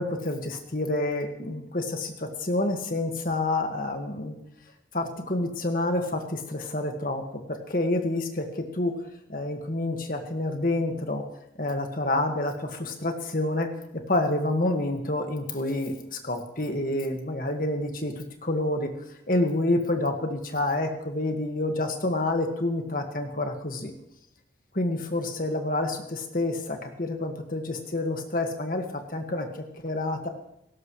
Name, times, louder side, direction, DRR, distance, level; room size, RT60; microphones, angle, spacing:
voice 1, 0.0-4.3 4.9-7.2 7.5-8.9 9.3-11.2 11.6-13.7 14.1-18.9 19.3-23.9 24.7-30.3, left 2 dB, 50° left, 4 dB, 1.9 m, -28 dB
18.0 x 16.5 x 3.2 m, 0.81 s
head